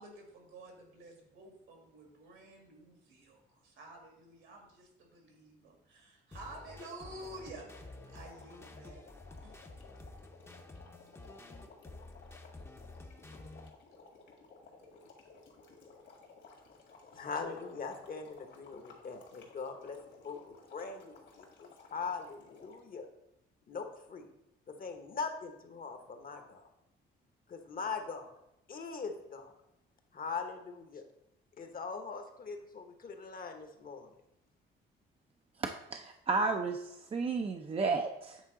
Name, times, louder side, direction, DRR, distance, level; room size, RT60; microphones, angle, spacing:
voice 1, 0.0-7.7 8.1-9.0 9.4-9.6, right 2 dB, 75° right, 1 dB, 2.0 m, -51 dB
sound 1, 6.3-13.7, left 2 dB, 15° left, 0.7 m, -51 dB
sound 2, 6.5-22.9, left 4 dB, 65° left, 1.8 m, -57 dB
voice 2, 17.1-23.1 23.7-24.3 24.7-26.7 27.5-28.3 28.7-29.5 30.1-31.0 31.6-34.1, left 5 dB, 45° left, 6 dB, 1.0 m, -41 dB
voice 3, 35.6-38.4, right 4 dB, 30° right, 4 dB, 0.5 m, -33 dB
8.2 x 3.7 x 3.7 m, 0.86 s
cardioid pair, 90°, 20 cm